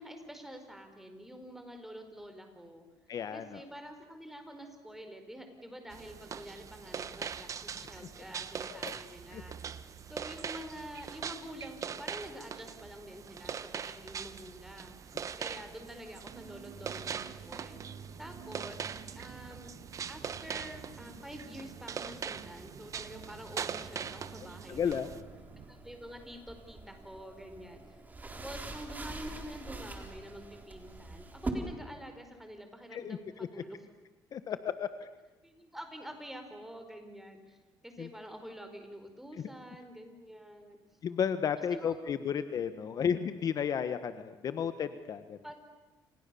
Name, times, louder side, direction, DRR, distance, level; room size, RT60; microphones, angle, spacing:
voice 1, 0.0-2.8 3.3-9.5 10.1-14.9 15.4-17.8 18.2-18.8 19.1-19.7 20.1-25.2 25.7-28.0 28.4-33.8 35.4-37.6 37.8-40.8 41.7-42.0 42.8-43.1 45.4-45.6, equal, 5° right, 6 dB, 4.7 m, -47 dB
voice 2, 3.1-3.6 8.0-8.1 8.7-9.0 9.3-9.4 24.7-25.1 32.9-33.5 34.3-34.9 38.0-38.1 41.0-45.4, left 7 dB, 45° left, 11 dB, 1.3 m, -33 dB
sound 1, 5.9-25.2, right 7 dB, 40° right, 1.3 m, -42 dB
sound 2, 16.3-25.7, right 6 dB, 55° right, 6.7 m, -51 dB
sound 3, 24.7-31.5, right 3 dB, 20° right, 3.9 m, -44 dB
29.5 x 28.0 x 7.0 m, 1.1 s
cardioid pair, 125°, 8 cm